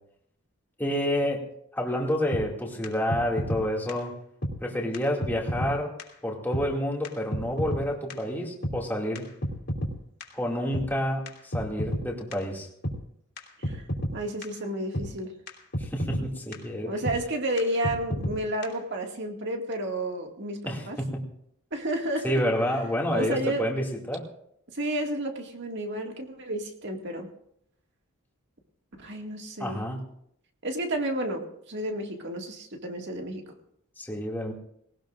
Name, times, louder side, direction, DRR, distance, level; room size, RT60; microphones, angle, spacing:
voice 1, 0.8-1.4 1.7-4.1 4.6-5.9 6.2-9.3 10.3-12.7 15.8-16.9 20.7-21.2 22.2-24.3 29.6-30.0 34.0-34.5, equal, 10° left, -1 dB, 2.4 m, -29 dB
sound 1, 2.3-2.4 2.8-2.9 3.1-3.6 3.9-4.0 4.4-4.5 4.9-5.0 5.2-5.7 6.0-6.1 6.5-6.6 7.0-7.1 7.3-7.8 8.1-8.2 8.6-8.7 9.2-9.9 10.2-10.3 10.7-10.9 11.3-11.4 11.5-12.0 12.3-12.4 12.8-13.0 13.4-13.5 13.6-14.1 14.4-14.5 14.9-15.1 15.5-15.6 15.7-16.2 16.5-16.6 17.1-17.2 17.6-17.7 17.8-18.4 18.6-18.7, equal, 50° left, 3.1 m, -29 dB
voice 2, 14.1-15.4 16.9-21.0 21.7-22.4 23.1-23.7 24.7-27.3 29.0-29.8 30.6-33.5, right 1 dB, 55° right, 2 dB, 2.1 m, -31 dB
19.5 x 18.5 x 2.6 m, 0.70 s
head